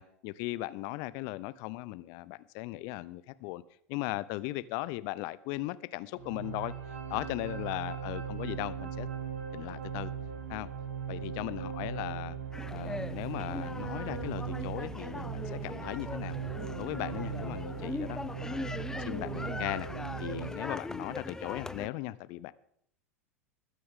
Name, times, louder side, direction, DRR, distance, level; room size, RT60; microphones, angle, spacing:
voice 1, 0.0-3.6 3.9-6.7 7.1-9.1 9.5-10.1 10.5-10.7 11.1-12.4 12.7-16.4 16.8-18.7 19.0-19.9 20.2-22.5, left 18 dB, 50° left, 0.6 m, -38 dB
sound 1, 6.1-20.5, right 7 dB, 75° right, 2.1 m, -39 dB
sound 2, 12.5-21.9, left 2 dB, 5° left, 0.4 m, -40 dB
21.0 x 9.5 x 3.7 m
figure-of-eight pair, 85°, 8 cm